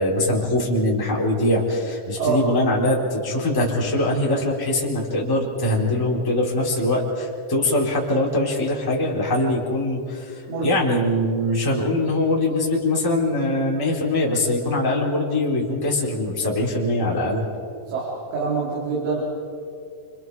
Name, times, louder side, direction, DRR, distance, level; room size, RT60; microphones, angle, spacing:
voice 1, 0.0-17.4, left 1 dB, 5° left, -4 dB, 3.0 m, -22 dB
voice 2, 17.9-19.2, right 5 dB, 75° right, -6 dB, 6.0 m, -25 dB
29.0 x 26.5 x 4.8 m, 2.5 s
omnidirectional pair, 5.7 m